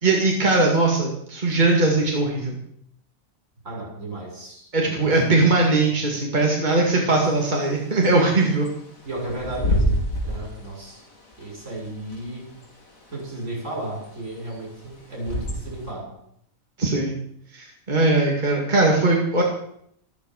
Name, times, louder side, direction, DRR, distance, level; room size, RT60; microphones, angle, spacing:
voice 1, 0.0-2.6 4.7-8.7 16.8-17.1 17.5-19.4, right 2 dB, 35° right, -1 dB, 2.6 m, -20 dB
voice 2, 3.6-5.2 6.7-7.2 9.1-10.0 10.2-11.0 11.4-12.5 13.1-16.1, right 2 dB, 65° right, -1 dB, 7.5 m, -34 dB
Bird / Wind, 7.2-15.9, equal, 80° left, 3.9 m, -29 dB
14.0 x 13.5 x 6.6 m, 0.71 s
omnidirectional pair, 1.4 m